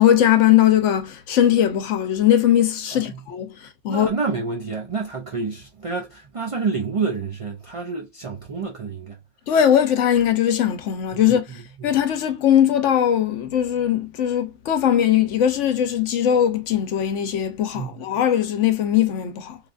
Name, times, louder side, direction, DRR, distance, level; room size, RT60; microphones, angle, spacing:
voice 1, 0.0-3.6 3.8-4.1 9.5-11.5 11.8-19.6, left 10 dB, 85° left, 1.0 m, -19 dB
voice 2, 3.9-9.2 11.5-12.0 17.7-18.0, right 4 dB, 60° right, 0.3 m, -28 dB
3.3 x 2.4 x 2.4 m
omnidirectional pair, 1.2 m